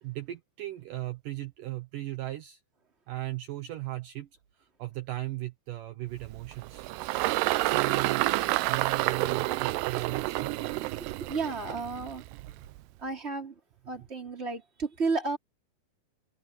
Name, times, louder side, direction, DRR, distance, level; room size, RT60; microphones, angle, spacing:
voice 1, 0.0-2.6 3.1-4.3 4.6-6.9 7.6-8.3 8.7-10.8 12.5-12.8, right 16 dB, 75° right, 2.0 m, -37 dB
Engine, 6.2-12.8, right 19 dB, 90° right, 2.4 m, -29 dB
voice 2, 11.2-12.2 13.0-13.5 13.8-15.4, right 4 dB, 15° right, 3.3 m, -32 dB
omnidirectional pair, 5.4 m